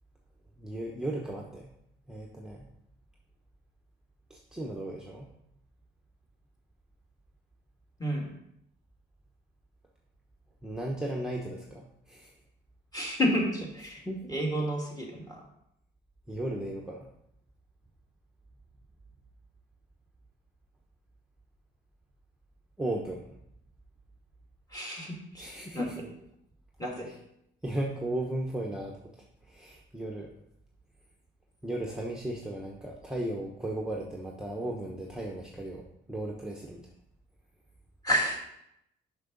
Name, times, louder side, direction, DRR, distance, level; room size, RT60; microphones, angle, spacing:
voice 1, 0.6-1.7 2.1-2.6 4.3-5.3 10.6-12.3 14.0-14.3 16.3-17.1 22.8-23.2 25.4-26.0 27.6-29.0 29.5-30.3 31.6-36.8, right 1 dB, 5° right, -1 dB, 0.9 m, -35 dB
voice 2, 12.9-14.0 14.3-15.4 24.7-25.9 26.8-27.1 38.0-38.4, equal, 20° left, -1 dB, 2.4 m, -30 dB
6.4 x 6.0 x 4.0 m, 0.77 s
cardioid pair, 90°, 20 cm